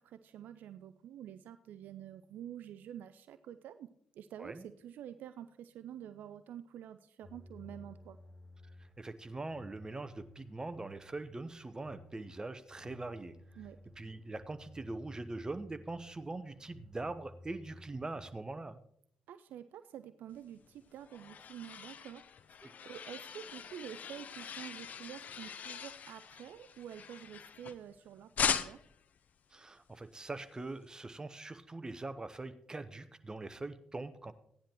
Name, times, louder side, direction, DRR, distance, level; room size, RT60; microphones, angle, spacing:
voice 1, 0.0-3.9 4.2-8.2 13.6-13.8 19.3-28.8, right 10 dB, 65° right, 12 dB, 0.4 m, -48 dB
sound 1, 7.2-18.3, left 1 dB, 25° left, 3.9 m, -56 dB
voice 2, 9.0-13.3 14.0-18.8 22.6-22.7 29.5-34.3, right 2 dB, 20° right, 11 dB, 0.9 m, -42 dB
sound 2, 20.6-27.9 28.4-29.0, left 7 dB, 55° left, 0.6 m, -40 dB
15.0 x 10.0 x 3.0 m, 0.68 s
hypercardioid pair, 45°, 3 cm